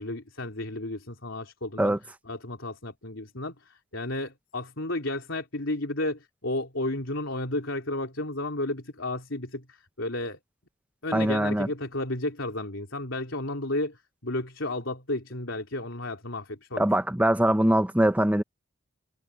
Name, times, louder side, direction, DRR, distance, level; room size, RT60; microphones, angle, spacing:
voice 1, 0.0-2.0 2.3-10.4 11.0-16.9, left 2 dB, 70° left, 3.8 m, -32 dB
voice 2, 11.1-11.7 16.8-18.4, right 1 dB, 5° right, 0.7 m, -22 dB
head